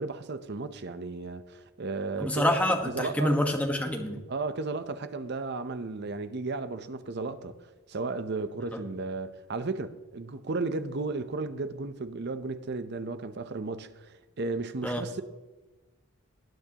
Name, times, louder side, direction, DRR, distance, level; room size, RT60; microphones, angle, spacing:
voice 1, 0.0-2.5 2.9-3.4 4.3-7.6 7.9-15.2, right 3 dB, 50° right, 0.7 m, -34 dB
voice 2, 2.2-4.2 14.8-15.0, left 1 dB, 5° left, 1.3 m, -27 dB
19.0 x 9.1 x 2.9 m
head